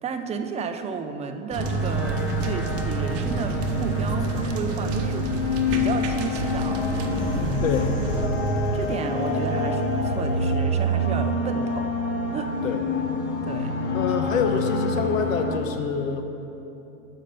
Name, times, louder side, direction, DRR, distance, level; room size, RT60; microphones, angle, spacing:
voice 1, 0.0-5.3 5.7-7.6 8.7-12.0 12.3-12.5 13.4-13.7, right 5 dB, 15° right, 6 dB, 0.5 m, -33 dB
sound 1, 1.5-15.6, left 1 dB, 30° left, 1.0 m, -26 dB
sound 2, 1.5-8.3, right 4 dB, 40° right, 1.0 m, -32 dB
Engine, 1.8-11.2, right 4 dB, 70° right, 1.0 m, -41 dB
voice 2, 7.6-7.9 12.6-12.8 13.9-16.2, left 5 dB, 90° left, 6 dB, 1.1 m, -26 dB
9.0 x 5.6 x 6.7 m, 2.9 s
supercardioid pair, 125°, 39 cm